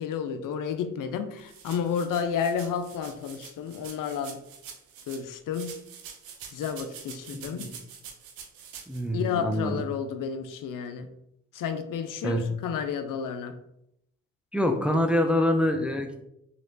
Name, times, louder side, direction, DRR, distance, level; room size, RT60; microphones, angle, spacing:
voice 1, 0.0-4.4 5.1-5.8 6.5-7.7 9.1-11.1 11.5-13.6, left 7 dB, 65° left, 9 dB, 0.5 m, -31 dB
sound 1, 1.4-5.2 5.5-9.0, right 7 dB, 85° right, 0.5 m, -45 dB
voice 2, 7.3-7.7 8.9-9.8 12.2-12.4 14.5-16.3, left 1 dB, 5° right, 4 dB, 0.4 m, -26 dB
3.1 x 2.9 x 2.6 m, 0.80 s
supercardioid pair, 45°, 35 cm